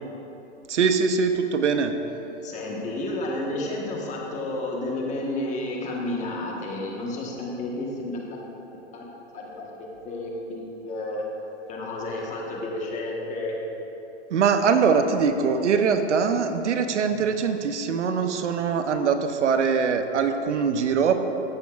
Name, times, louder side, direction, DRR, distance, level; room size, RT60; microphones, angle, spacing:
voice 1, 0.7-1.9 14.3-21.1, right 6 dB, 90° right, 8 dB, 0.8 m, -22 dB
voice 2, 2.4-8.4 8.9-9.1 9.3-9.7 10.0-11.2 11.7-13.6, left 2 dB, 20° left, -1 dB, 1.3 m, -31 dB
14.0 x 7.1 x 2.4 m, 2.9 s
hypercardioid pair, 135°, 34 cm